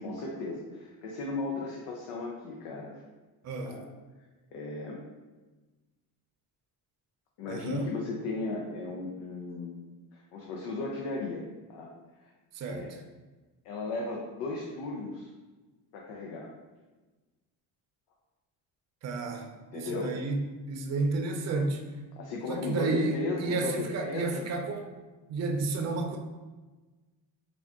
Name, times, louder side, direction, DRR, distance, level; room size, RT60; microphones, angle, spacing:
voice 1, 0.0-3.0 3.6-3.8 4.5-5.0 7.4-11.9 12.2-12.3 12.6-13.0 13.6-15.3 15.9-16.5 19.7-20.2 22.2-24.5, left 3 dB, 90° left, -1 dB, 0.6 m, -36 dB
voice 2, 3.4-3.8 7.5-7.9 12.5-12.9 19.0-19.5 19.7-21.8 22.5-24.8 25.3-26.2, right 3 dB, 40° right, 3 dB, 0.5 m, -31 dB
3.6 x 2.3 x 3.5 m, 1.2 s
cardioid pair, 115°, 41 cm